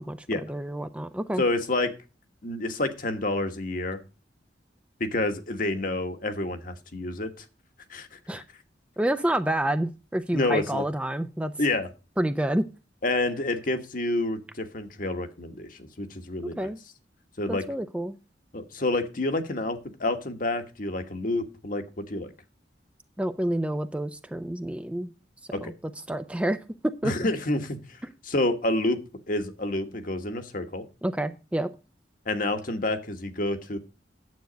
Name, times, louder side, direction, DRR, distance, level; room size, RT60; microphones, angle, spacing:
voice 1, 0.5-1.4 8.3-8.4 9.0-11.5 12.2-12.7 16.6-16.8 17.5-18.1 23.2-25.1 25.6-25.7 26.1-26.6 27.0-27.1 31.0-31.7, right 1 dB, 5° right, 9 dB, 0.4 m, -28 dB
voice 2, 1.4-1.9 2.4-4.0 5.0-7.4 7.9-8.4 10.3-10.8 11.6-11.9 13.0-16.7 17.4-17.6 18.5-22.3 25.5-25.7 27.0-29.0 29.3-30.8 32.3-33.8, left 2 dB, 50° left, 7 dB, 1.3 m, -28 dB
9.5 x 7.8 x 5.0 m, 0.32 s
head